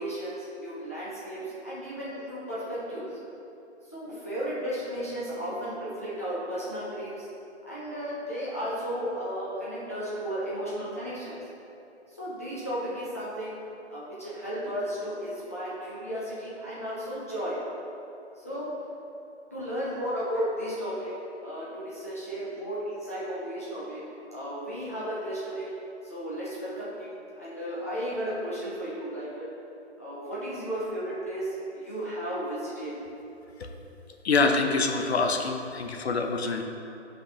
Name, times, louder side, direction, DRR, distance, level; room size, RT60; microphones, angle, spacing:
voice 1, 0.0-3.2 3.9-7.3 7.7-11.4 12.1-13.6 13.9-17.6 18.4-18.7 19.5-21.1 21.4-24.0 24.3-25.7 26.0-29.5 30.0-32.9, equal, 15° left, -9 dB, 0.5 m, -34 dB
voice 2, 34.2-36.6, left 4 dB, 65° left, 4 dB, 0.7 m, -25 dB
8.4 x 5.3 x 2.8 m, 2.8 s
hypercardioid pair, 170°, 35 cm